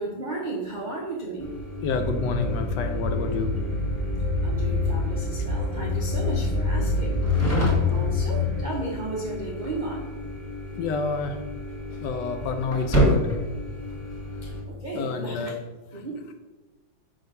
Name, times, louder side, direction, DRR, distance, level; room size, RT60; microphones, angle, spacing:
voice 1, 0.0-1.5 4.4-7.2 7.8-10.1 14.4-15.6 15.9-16.2, right 2 dB, 80° right, -2 dB, 0.4 m, -34 dB
sound 1, 1.4-14.6, equal, 10° left, 1.2 m, -31 dB
voice 2, 1.8-3.6 10.8-11.4 12.0-13.3 14.9-15.5, left 4 dB, 75° left, 7 dB, 1.1 m, -28 dB
sound 2, 1.9-8.6, left 3 dB, 25° left, 0.9 m, -26 dB
5.7 x 3.8 x 5.3 m, 1.2 s
omnidirectional pair, 2.1 m